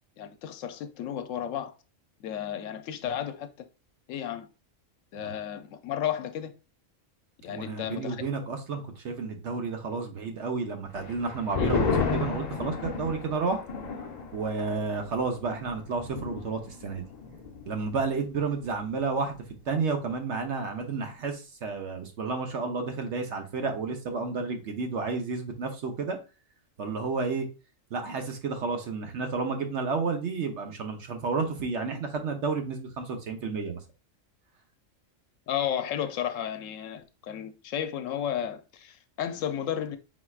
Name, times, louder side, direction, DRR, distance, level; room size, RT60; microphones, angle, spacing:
voice 1, 0.2-1.7 2.2-3.7 4.1-4.5 5.1-6.5 7.4-8.2 11.6-11.8 35.5-40.0, left 9 dB, 75° left, 0.9 m, -33 dB
voice 2, 7.5-13.6 14.3-17.0 17.7-19.4 19.7-26.2 26.8-27.5 27.9-33.8, right 4 dB, 65° right, 1.1 m, -31 dB
big thunder clap, 10.9-17.9 18.2-18.3 18.7-19.1, left 5 dB, 45° left, 0.6 m, -33 dB
4.5 x 4.2 x 2.3 m
omnidirectional pair, 1.3 m